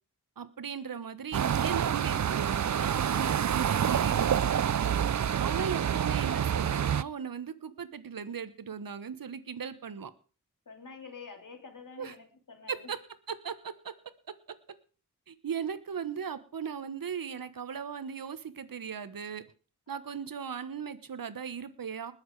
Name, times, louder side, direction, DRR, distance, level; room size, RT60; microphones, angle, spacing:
voice 1, 0.4-4.3 5.4-10.1 12.0-12.1 12.7-13.0 13.3-13.9 14.3-14.4 15.3-19.4 19.9-22.1, right 7 dB, 75° right, 12 dB, 1.3 m, -38 dB
sound 1, 1.3-7.0, right 9 dB, 55° right, 0.6 m, -27 dB
voice 2, 10.7-12.9, left 5 dB, 65° left, 4 dB, 3.5 m, -47 dB
20.5 x 7.3 x 4.8 m, 0.36 s
cardioid pair, 50°, 34 cm